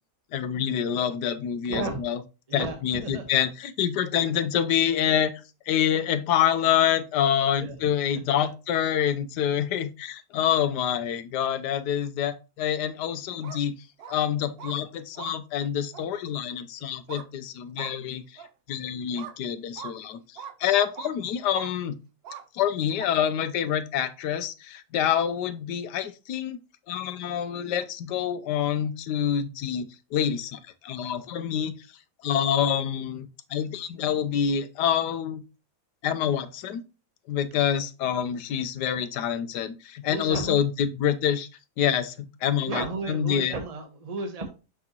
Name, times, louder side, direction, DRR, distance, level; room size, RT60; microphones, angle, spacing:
voice 1, 0.3-2.2 2.5-5.3 5.7-13.7 14.1-18.4 18.7-20.2 20.6-22.0 22.5-26.6 26.9-31.7 32.2-35.4 36.0-36.8 37.3-41.5 41.8-42.1 42.4-43.5, left 9 dB, 90° left, 11 dB, 1.3 m, -26 dB
voice 2, 1.7-2.0 2.5-3.3 7.5-7.8 8.4-8.5 40.1-40.6 42.7-44.5, right 3 dB, 25° right, 5 dB, 1.2 m, -33 dB
sound 1, 13.3-13.6 14.0-14.2 14.6-14.8 15.1-15.3 15.9-16.1 17.1-17.3 17.8-17.9 18.4-18.5 19.1-19.4 19.8-19.9 20.4-20.5 20.9-21.1 21.5-21.7 22.2-22.4 23.0-23.1, right 8 dB, 85° right, 0.5 m, -40 dB
6.6 x 6.1 x 2.9 m, 0.30 s
omnidirectional pair, 1.7 m